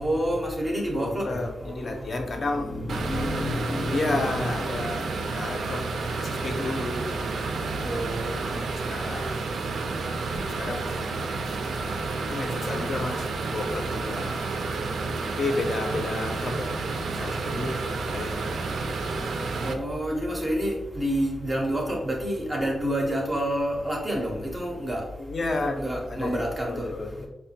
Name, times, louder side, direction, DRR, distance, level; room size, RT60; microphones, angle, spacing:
voice 1, 0.0-2.0 7.8-8.6 19.6-25.0 25.8-26.8, equal, 15° right, -1 dB, 0.4 m, -28 dB
voice 2, 0.9-7.1 8.3-9.4 9.7-10.1 10.4-11.3 12.2-14.5 15.3-18.9 25.2-27.3, left 2 dB, 45° left, 4 dB, 0.5 m, -32 dB
sound 1, 2.9-19.7, right 3 dB, 85° right, 0.3 m, -30 dB
4.7 x 2.1 x 2.7 m, 0.95 s
wide cardioid pair, 170°, 0 cm